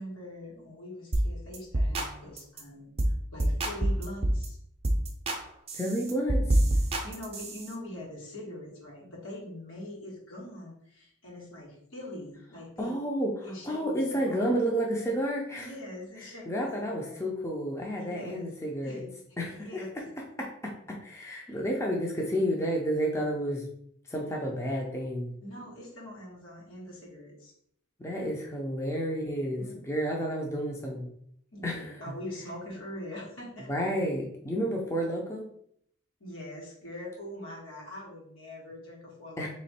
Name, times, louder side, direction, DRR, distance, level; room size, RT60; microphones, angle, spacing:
voice 1, 0.0-4.6 7.0-13.0 13.4-14.5 15.6-17.2 17.9-18.5 18.8-19.0 19.3-20.1 21.5-21.6 25.4-27.5 29.6-29.8 31.5-33.7 36.2-39.5, left 1 dB, 85° left, -4 dB, 1.8 m, -43 dB
sound 1, 1.1-1.3 1.5-2.1 2.4-2.6 3.0-3.1 3.4-4.5 4.8-5.4 5.7-7.7, right 1 dB, 30° right, 0.6 m, -26 dB
voice 2, 5.7-6.4 12.8-15.7 16.5-19.1 19.4-19.8 20.4-23.7 24.1-25.3 28.0-31.1 31.6-32.1 33.7-35.5 39.4-39.5, equal, 15° left, -1 dB, 0.5 m, -31 dB
3.6 x 3.1 x 4.3 m, 0.68 s
head